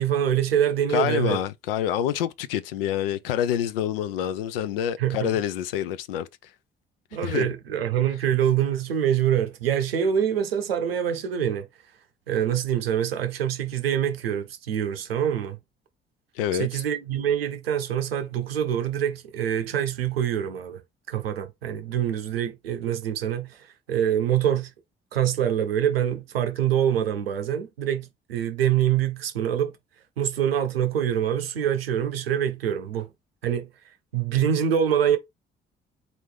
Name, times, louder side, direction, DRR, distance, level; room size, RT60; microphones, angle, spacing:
voice 1, 0.0-1.4 5.0-5.3 7.1-11.7 12.3-15.6 16.6-20.8 21.1-24.7 25.1-29.7 30.2-33.1 33.4-33.7 34.1-35.2, right 9 dB, 80° right, 0.6 m, -25 dB
voice 2, 0.9-6.3 7.2-7.5 16.4-16.8, left 10 dB, 75° left, 0.5 m, -27 dB
4.1 x 2.9 x 3.3 m
figure-of-eight pair, 40°, 29 cm